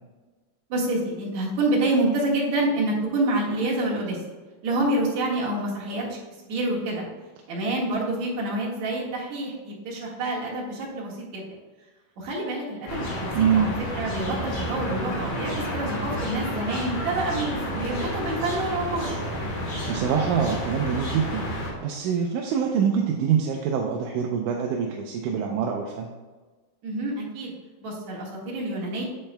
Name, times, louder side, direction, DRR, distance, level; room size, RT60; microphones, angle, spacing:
voice 1, 0.7-4.2 4.6-6.0 6.5-7.0 7.5-11.4 12.2-19.1 26.8-27.5 27.8-29.1, right 2 dB, 60° right, -4 dB, 2.8 m, -27 dB
sound 1, 12.9-21.7, equal, 60° left, 3.2 m, -30 dB
voice 2, 13.3-13.7 19.9-21.5 21.8-26.1, right 7 dB, 80° right, 1 dB, 2.0 m, -25 dB
8.8 x 8.0 x 2.2 m, 1.3 s
omnidirectional pair, 3.8 m